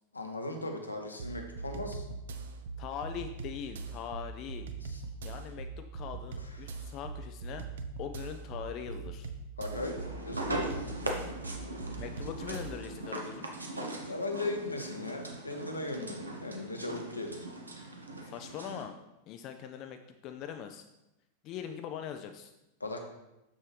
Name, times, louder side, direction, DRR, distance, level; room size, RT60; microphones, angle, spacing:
voice 1, 0.1-2.1 4.8-5.0 9.6-10.0 10.3-10.7 14.0-17.4 22.8-23.0, left 2 dB, 80° left, 3 dB, 0.9 m, -37 dB
sound 1, 1.2-12.9, right 4 dB, 60° right, 0.5 m, -42 dB
voice 2, 2.8-4.7 5.2-7.7 8.0-9.3 12.0-13.5 18.3-19.0 19.3-20.9 21.4-22.5, left 9 dB, 40° left, 6 dB, 0.4 m, -41 dB
sound 2, 9.7-18.9, right 1 dB, 80° right, 0.9 m, -40 dB
6.6 x 6.1 x 3.1 m, 0.94 s
figure-of-eight pair, 90°, 0 cm